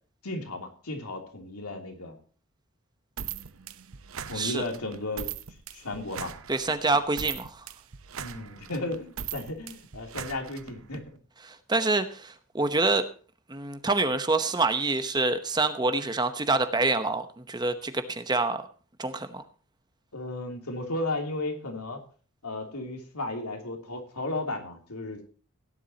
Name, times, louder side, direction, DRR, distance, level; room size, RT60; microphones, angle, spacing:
voice 1, 0.2-2.2 4.3-5.3 5.7-6.3 8.2-11.2 20.1-22.0 22.4-25.2, left 2 dB, 90° left, 3 dB, 3.1 m, -34 dB
sound 1, 3.2-11.0, right 8 dB, 70° right, 0.8 m, -40 dB
voice 2, 6.5-7.6 11.4-13.1 13.5-18.6 19.0-19.4, right 3 dB, 20° right, 9 dB, 0.9 m, -26 dB
17.0 x 11.0 x 2.9 m, 0.39 s
head